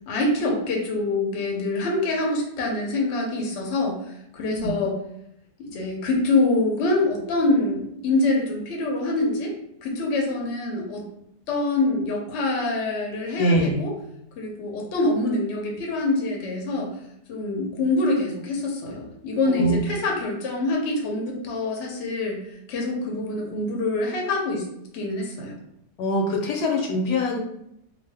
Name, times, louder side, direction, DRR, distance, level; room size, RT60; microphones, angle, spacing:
voice 1, 0.1-4.0 4.3-5.0 5.6-9.5 9.8-11.0 11.5-13.9 14.4-16.9 17.3-22.4 22.7-24.7 24.9-25.6, left 2 dB, 55° left, 0 dB, 0.8 m, -25 dB
voice 2, 4.4-4.8 13.4-13.8 19.4-19.8 26.0-27.4, equal, 80° left, 2 dB, 1.1 m, -23 dB
2.6 x 2.3 x 3.3 m, 0.77 s
omnidirectional pair, 1.8 m